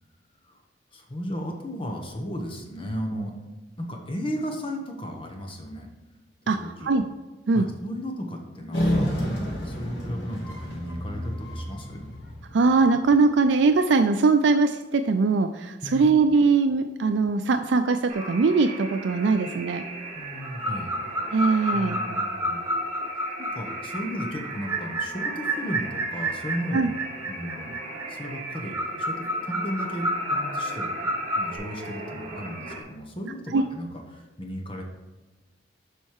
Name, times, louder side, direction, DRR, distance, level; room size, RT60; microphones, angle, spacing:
voice 1, 0.9-3.3 3.8-5.9 6.5-6.9 7.5-12.0 15.8-16.1 20.1-21.0 21.7-22.6 23.4-26.9 27.3-27.8 28.1-34.8, equal, 30° left, 2 dB, 1.1 m, -35 dB
voice 2, 6.5-7.0 7.5-7.7 12.5-19.8 21.3-22.0 26.7-26.9 33.5-33.6, right 4 dB, 80° right, 8 dB, 0.4 m, -21 dB
sound 1, 8.7-13.3, equal, 90° left, 2.3 m, -30 dB
sound 2, 18.1-32.8, right 2 dB, 40° right, 1.8 m, -39 dB
sound 3, 20.4-31.6, equal, 15° right, 0.9 m, -30 dB
7.4 x 5.5 x 4.8 m, 1.2 s
head